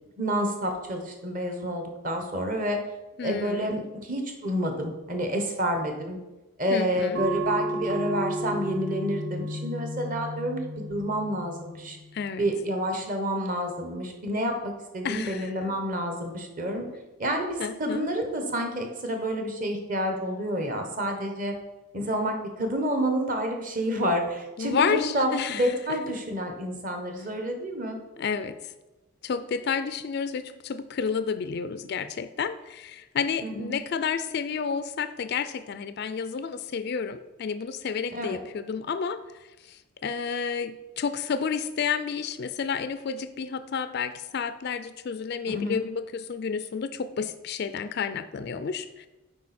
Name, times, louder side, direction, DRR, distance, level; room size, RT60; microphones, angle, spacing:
voice 1, 0.2-2.8 3.2-6.2 6.6-10.6 10.9-12.0 12.4-16.8 17.2-21.5 21.9-28.0 33.4-33.8 38.1-38.4 45.5-45.8, equal, 40° right, 4 dB, 1.1 m, -29 dB
voice 2, 3.2-3.7 6.7-7.3 12.1-12.5 15.0-15.5 17.6-18.1 24.6-26.1 28.2-28.7 29.2-39.2 39.6-49.1, left 6 dB, 50° left, 12 dB, 0.3 m, -30 dB
sound 1, 7.1-12.3, right 1 dB, 55° right, 0.7 m, -33 dB
8.4 x 5.1 x 4.2 m, 1.1 s
head